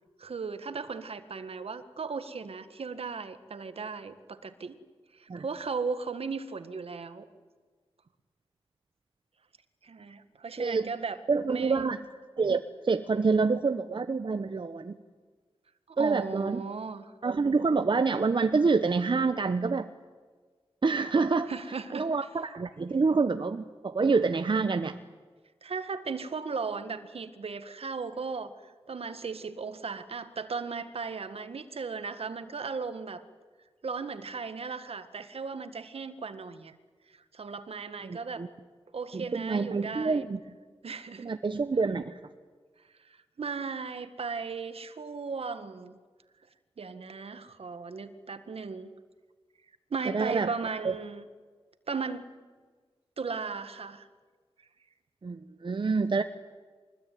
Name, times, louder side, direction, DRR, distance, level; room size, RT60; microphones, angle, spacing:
voice 1, 0.2-4.8 5.2-7.2 9.8-11.2 11.5-11.8 15.9-17.1 21.5-22.1 25.6-28.5 28.9-33.2 33.8-36.8 37.3-38.5 38.9-40.3 40.8-41.3 43.4-46.0 46.8-48.9 49.9-51.2 51.9-52.3 53.2-54.1, right 5 dB, 70° right, 10 dB, 1.8 m, -36 dB
voice 2, 10.6-10.9 11.3-12.0 12.4-14.9 16.0-16.6 17.2-19.9 20.8-21.5 21.9-25.0 38.0-38.5 39.1-40.4 41.2-42.1 50.1-50.5 55.2-56.2, right 4 dB, 50° right, 9 dB, 1.0 m, -27 dB
24.0 x 20.5 x 9.4 m, 1.5 s
cardioid pair, 55°, 10 cm